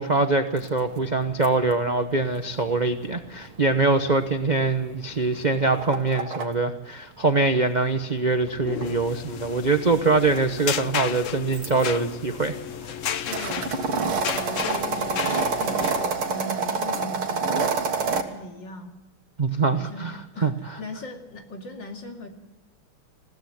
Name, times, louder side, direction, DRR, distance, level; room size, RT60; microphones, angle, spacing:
voice 1, 0.0-12.6 12.8-13.0 19.4-20.1 20.4-20.5, right 3 dB, 40° right, 7 dB, 0.6 m, -23 dB
moped-start-go-return-stop, 0.6-6.5 7.7-11.9 12.4-18.2, right 4 dB, 80° right, 2.5 m, -29 dB
sound 1, 8.5-16.0, left 9 dB, 75° left, 0.7 m, -33 dB
voice 2, 13.1-17.6 18.1-18.9 19.6-22.3, left 1 dB, 55° left, 3 dB, 3.1 m, -39 dB
21.0 x 16.5 x 7.9 m, 1.1 s
omnidirectional pair, 2.4 m